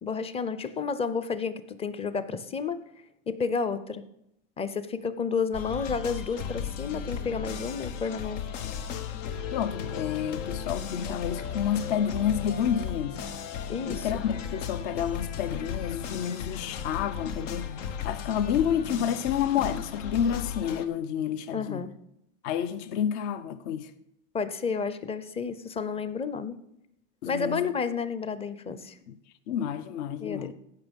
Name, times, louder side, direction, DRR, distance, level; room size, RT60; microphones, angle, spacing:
voice 1, 0.0-2.8 3.3-4.0 4.6-8.4 13.7-14.2 21.5-21.9 24.3-26.6 27.3-29.0 30.2-30.5, left 5 dB, 15° left, 0.6 m, -31 dB
sound 1, 5.5-20.9, left 7 dB, 85° left, 1.1 m, -35 dB
voice 2, 9.5-13.2 13.9-17.7 18.0-21.9 22.4-23.9 27.2-27.7 29.1-29.2 29.5-30.5, left 9 dB, 60° left, 0.8 m, -29 dB
15.0 x 5.9 x 5.3 m
supercardioid pair, 135°, 36 cm